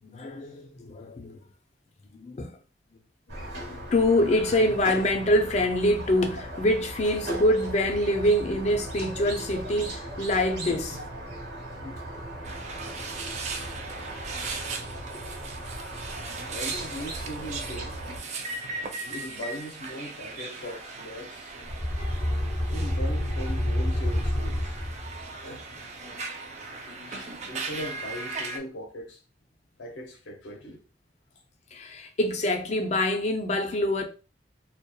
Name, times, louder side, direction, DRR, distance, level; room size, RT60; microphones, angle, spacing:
voice 1, 0.0-1.4 2.1-2.5 3.4-11.0 11.8-12.0 14.3-14.5 14.7-14.8 16.3-16.4 26.0-26.3 26.6-27.3 31.7-34.0, left 1 dB, 40° left, 0.4 m, -26 dB
Squeak, 3.3-18.2, right 1 dB, 70° right, 1.1 m, -38 dB
sound 1, 12.4-28.6, right 3 dB, 40° right, 0.3 m, -38 dB
voice 2, 16.5-18.3 19.1-21.6 22.7-24.8 25.4-25.6 27.1-29.2 29.8-30.8, equal, 90° left, 0.6 m, -39 dB
sound 2, 21.6-25.3, equal, 20° right, 0.8 m, -28 dB
2.7 x 2.2 x 2.2 m
head